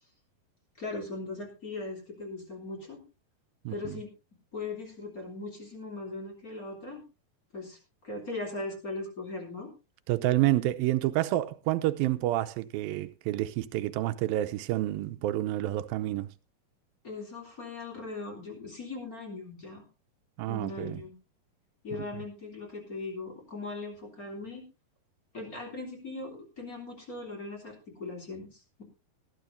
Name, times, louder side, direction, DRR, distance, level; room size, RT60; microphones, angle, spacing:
voice 1, 0.8-3.0 3.7-4.1 4.5-7.0 7.5-9.7 17.0-19.9 20.4-21.2 21.8-24.7 25.3-28.8, left 3 dB, 25° left, 3.5 m, -39 dB
voice 2, 3.7-4.0 10.1-16.3 20.4-21.0, right 15 dB, 75° right, 2.4 m, -29 dB
19.0 x 12.0 x 2.7 m
omnidirectional pair, 4.4 m